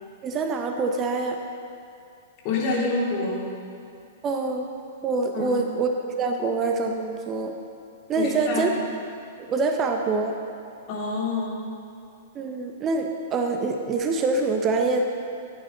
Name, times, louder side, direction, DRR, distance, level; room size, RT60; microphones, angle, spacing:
voice 1, 0.2-1.4 4.2-4.7 5.0-5.9 6.2-7.5 8.1-8.7 9.4-10.3 12.3-15.0, right 3 dB, 25° right, 4 dB, 0.9 m, -25 dB
voice 2, 2.4-3.4 5.3-5.6 8.2-8.7 10.9-11.6, left 3 dB, 40° left, -4 dB, 3.4 m, -27 dB
14.5 x 10.5 x 4.1 m, 2.6 s
figure-of-eight pair, 105°, 0 cm